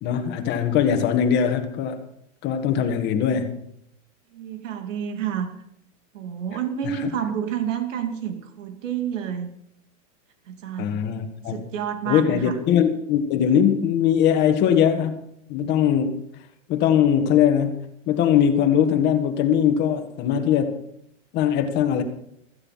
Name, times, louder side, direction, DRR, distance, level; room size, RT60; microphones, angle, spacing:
voice 1, 0.0-2.0 2.4-3.6 6.8-7.1 10.8-11.6 12.1-15.2 15.5-16.2 16.7-20.8 21.3-22.0, left 8 dB, 25° left, 7 dB, 1.8 m, -21 dB
voice 2, 4.3-5.5 6.1-9.5 10.5-11.0 11.5-12.5, right 9 dB, 80° right, 6 dB, 2.8 m, -29 dB
16.5 x 15.0 x 5.8 m, 0.71 s
supercardioid pair, 165°, 38 cm